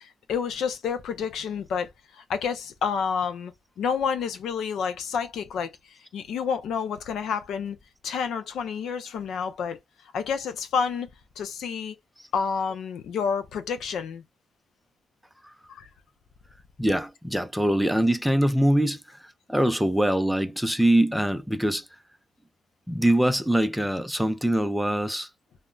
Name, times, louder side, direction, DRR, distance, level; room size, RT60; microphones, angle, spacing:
voice 1, 0.0-7.8 8.0-9.8 10.1-11.1 11.4-12.0 12.3-14.2 15.7-15.9, left 6 dB, 70° left, 0.5 m, -29 dB
voice 2, 16.8-19.0 19.5-21.8 22.9-25.3, right 1 dB, ahead, 0.4 m, -23 dB
2.1 x 2.1 x 3.7 m
cardioid pair, 90°, 0 cm